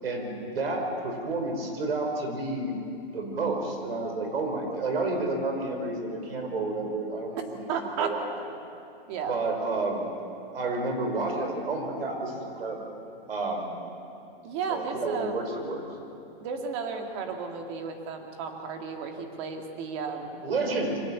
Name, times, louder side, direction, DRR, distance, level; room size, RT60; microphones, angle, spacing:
voice 1, 0.0-2.7 3.1-7.6 7.8-8.3 9.3-10.1 10.5-12.9 13.3-13.7 14.7-15.8 20.4-21.0, right 2 dB, 85° right, 3 dB, 5.4 m, -30 dB
voice 2, 7.7-8.2 9.1-9.4 14.4-15.4 16.4-20.4, right 5 dB, 30° right, 4 dB, 2.2 m, -33 dB
24.5 x 17.0 x 8.4 m, 2.6 s
hypercardioid pair, 165°, 29 cm